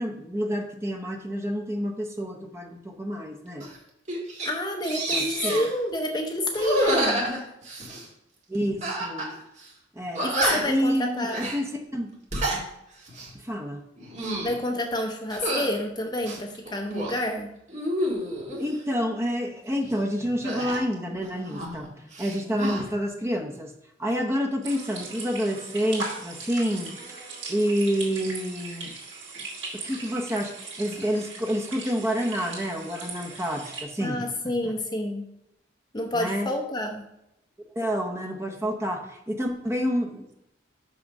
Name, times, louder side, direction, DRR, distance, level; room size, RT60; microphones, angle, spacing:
voice 1, 0.0-3.7 5.1-5.6 8.5-9.4 9.9-10.3 10.7-12.1 13.3-13.8 18.6-21.9 22.2-23.7 24.0-26.9 27.5-28.9 29.7-34.2 34.6-34.7 36.1-36.5 37.7-40.3, equal, 15° right, 2 dB, 0.9 m, -28 dB
sound 1, 3.6-3.8 4.1-4.5 4.8-5.7 6.5-8.0 8.8-9.3 9.6-9.7 10.1-10.8 11.3-11.6 12.1-12.6 13.1-13.3 14.0-14.6 15.3-15.7 16.2-17.2 17.7-18.6 20.4-21.9 22.1-22.8, right 1 dB, 40° right, 1.7 m, -29 dB
voice 2, 4.4-7.2 10.2-11.4 14.4-17.5 34.0-35.3 35.9-37.0, left 1 dB, 20° left, 3 dB, 0.7 m, -29 dB
sound 2, 24.6-33.8, right 3 dB, 70° right, 2.6 m, -39 dB
6.1 x 6.1 x 5.3 m, 0.86 s
head